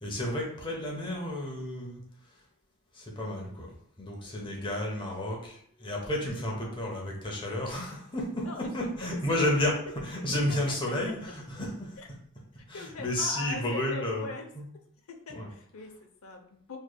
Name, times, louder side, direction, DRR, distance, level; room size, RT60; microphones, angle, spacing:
voice 1, 0.0-2.0 2.9-12.0 12.7-14.7 15.3-15.5, left 1 dB, 25° left, -2 dB, 0.9 m, -32 dB
voice 2, 4.2-4.7 5.0-5.9 6.6-6.8 8.1-9.6 10.5-10.8 12.0-12.1 12.7-14.5 15.1-16.8, left 3 dB, 70° left, 3 dB, 0.7 m, -43 dB
4.4 x 3.2 x 2.2 m, 0.63 s
head